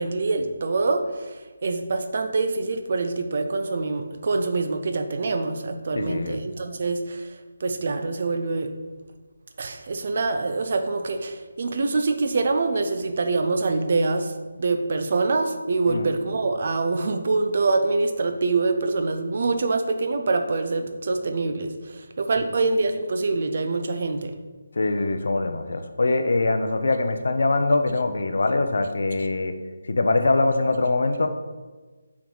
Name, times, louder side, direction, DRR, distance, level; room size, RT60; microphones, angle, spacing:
voice 1, 0.0-1.4 1.6-7.3 7.6-8.7 9.6-14.3 14.6-24.4, right 3 dB, 40° right, 6 dB, 0.5 m, -25 dB
voice 2, 5.9-6.4 15.9-16.1 24.8-29.5 29.9-31.3, left 2 dB, 60° left, 7 dB, 0.5 m, -23 dB
7.4 x 3.6 x 3.9 m, 1.3 s
hypercardioid pair, 175°, 0 cm